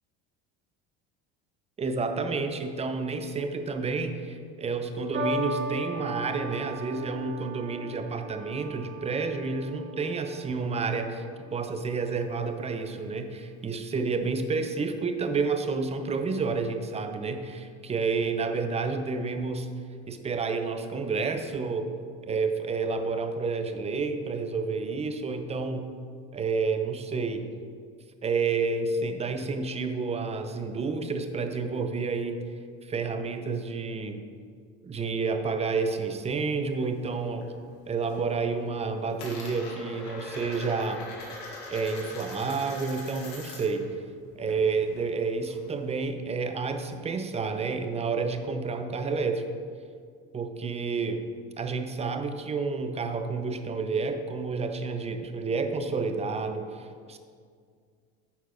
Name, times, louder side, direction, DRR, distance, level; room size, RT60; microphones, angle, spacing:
voice 1, 1.8-19.7 20.1-21.9 22.2-25.9 26.3-27.5 28.2-32.4 32.9-34.2 34.8-37.5 37.9-41.0 41.7-43.9 44.3-49.5 50.3-51.3 51.6-57.2, right 4 dB, 20° right, 7 dB, 0.7 m, -30 dB
sound 1, 5.1-11.7 12.5-12.9, right 1 dB, 40° right, 1.6 m, -37 dB
Coin (dropping), 36.3-37.5 37.8-38.3 38.6-43.9 44.1-45.8, left 2 dB, 70° left, 2.4 m, -43 dB
9.4 x 4.5 x 5.9 m, 2.1 s
supercardioid pair, 115°, 29 cm